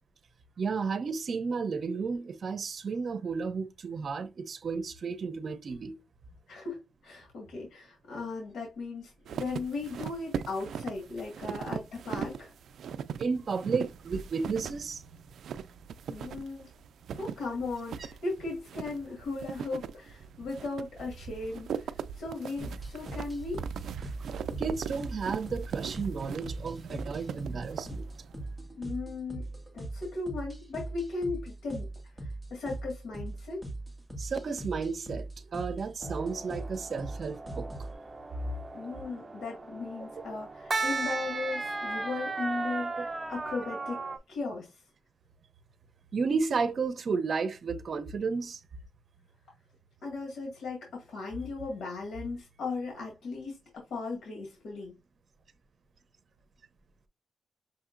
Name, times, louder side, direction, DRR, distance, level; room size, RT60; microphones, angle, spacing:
voice 1, 0.6-5.9 12.9-15.0 17.1-17.2 24.6-28.1 34.2-37.9 43.0-43.1 46.1-48.6, right 5 dB, 55° right, 0.7 m, -33 dB
voice 2, 6.5-12.5 16.1-16.7 17.2-23.6 28.8-29.4 29.7-33.6 38.7-44.0 44.3-44.8 50.0-54.9, left 3 dB, 75° left, 1.8 m, -37 dB
sound 1, 9.3-28.4, right 7 dB, 85° right, 0.3 m, -40 dB
sound 2, 22.6-37.9, right 2 dB, 5° left, 1.4 m, -40 dB
sound 3, 36.0-44.2, right 3 dB, 25° right, 0.8 m, -36 dB
6.2 x 2.8 x 2.5 m
cardioid pair, 105°, 0 cm